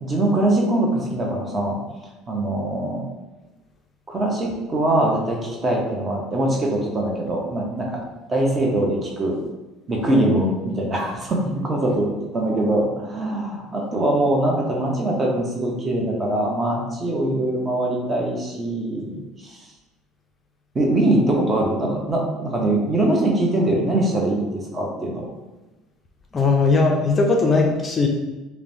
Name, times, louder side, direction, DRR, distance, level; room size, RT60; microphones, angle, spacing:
voice 1, 0.0-1.8 2.3-3.0 4.1-8.0 8.3-9.4 9.9-19.6 20.7-25.3, right 1 dB, 30° right, -1 dB, 0.7 m, -22 dB
voice 2, 26.3-28.1, left 3 dB, 30° left, 1 dB, 0.4 m, -18 dB
3.0 x 2.1 x 2.6 m, 1.1 s
supercardioid pair, 95°, 0 cm